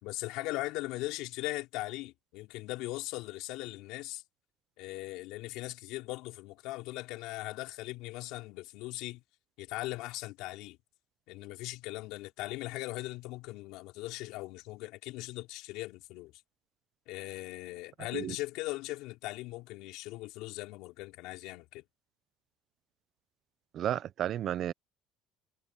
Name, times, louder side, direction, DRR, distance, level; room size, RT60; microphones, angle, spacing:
voice 1, 0.0-4.2 4.8-9.2 9.6-10.8 11.3-16.3 17.1-21.8, left 19 dB, 75° left, 3.9 m, -39 dB
voice 2, 23.7-24.7, right 11 dB, 45° right, 0.6 m, -32 dB
cardioid pair, 135°, 0 cm